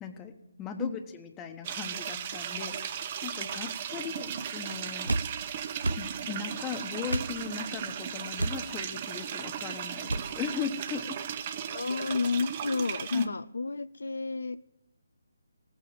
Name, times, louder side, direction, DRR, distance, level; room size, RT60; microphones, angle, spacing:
voice 1, 0.0-2.9 3.2-5.1 6.0-11.2 13.1-13.3, left 7 dB, 15° left, 7 dB, 1.2 m, -38 dB
sound 1, 1.6-13.3, right 8 dB, 30° right, 0.9 m, -36 dB
sound 2, 5.1-5.3 5.8-6.0 7.1-7.3 8.4-8.6 10.1-10.3, right 2 dB, 80° right, 0.6 m, -29 dB
voice 2, 11.7-14.6, left 4 dB, 65° left, 15 dB, 0.4 m, -31 dB
16.5 x 8.8 x 7.9 m, 0.91 s
figure-of-eight pair, 150°, 0 cm